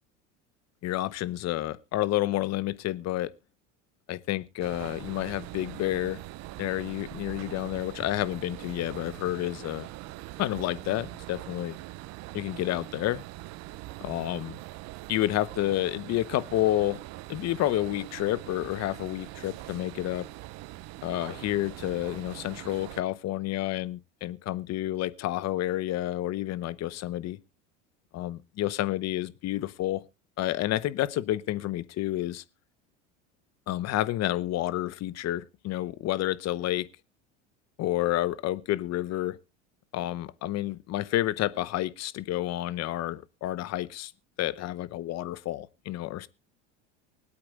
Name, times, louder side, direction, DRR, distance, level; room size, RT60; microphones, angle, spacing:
voice 1, 0.8-3.3 4.1-6.2 6.6-9.9 10.4-11.8 12.3-13.2 14.0-14.5 15.1-17.0 17.3-20.3 21.0-27.4 28.1-30.0 30.4-32.4 33.7-36.9 37.8-39.4 39.9-44.1 44.4-46.3, left 14 dB, 45° left, 17 dB, 0.9 m, -30 dB
sound 1, 4.6-23.0, right 18 dB, 45° right, 0.6 m, -42 dB
24.0 x 8.7 x 2.5 m, 0.27 s
hypercardioid pair, 85°, 36 cm